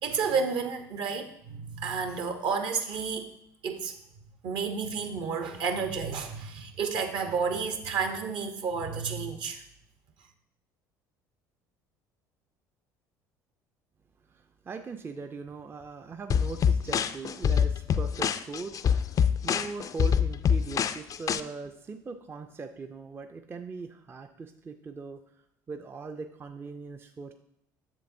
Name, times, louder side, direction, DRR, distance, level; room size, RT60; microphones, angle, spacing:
voice 1, 0.0-3.3 3.6-9.6, right 5 dB, 60° right, 7 dB, 0.9 m, -31 dB
voice 2, 14.2-27.3, right 4 dB, 25° right, 7 dB, 0.4 m, -40 dB
sound 1, 16.3-21.4, left 7 dB, 40° left, 0.4 m, -25 dB
7.5 x 6.8 x 2.6 m, 0.74 s
hypercardioid pair, 65°, 10 cm